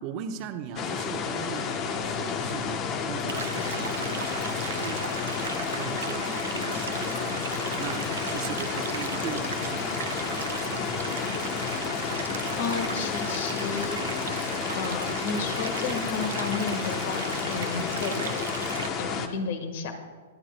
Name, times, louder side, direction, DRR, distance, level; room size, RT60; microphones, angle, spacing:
voice 1, 0.0-11.0, right 8 dB, 40° right, 6 dB, 1.0 m, -39 dB
sound 1, 0.8-19.3, left 6 dB, 35° left, 0.9 m, -31 dB
sound 2, 2.0-8.7, left 12 dB, 10° right, 1.2 m, -48 dB
sound 3, 3.3-18.9, right 8 dB, 75° right, 0.6 m, -37 dB
voice 2, 12.6-14.5 14.7-18.5 18.9-19.9, left 4 dB, 60° left, 7 dB, 1.5 m, -33 dB
19.0 x 11.5 x 2.2 m, 1.5 s
hypercardioid pair, 120°, 0 cm